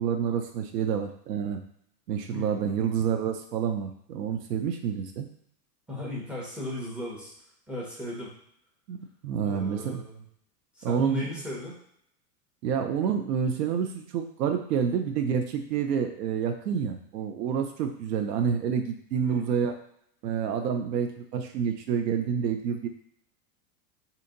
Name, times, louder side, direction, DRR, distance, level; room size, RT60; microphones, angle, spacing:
voice 1, 0.0-1.6 2.1-5.3 8.9-10.0 10.8-11.3 12.6-19.7 20.2-22.9, right 7 dB, 90° right, 5 dB, 0.7 m, -28 dB
voice 2, 5.9-7.3 7.7-8.3 9.4-10.2 10.8-11.7 19.2-19.5, left 2 dB, ahead, -4 dB, 1.0 m, -36 dB
2.8 x 2.6 x 3.8 m, 0.70 s
supercardioid pair, 125°, 47 cm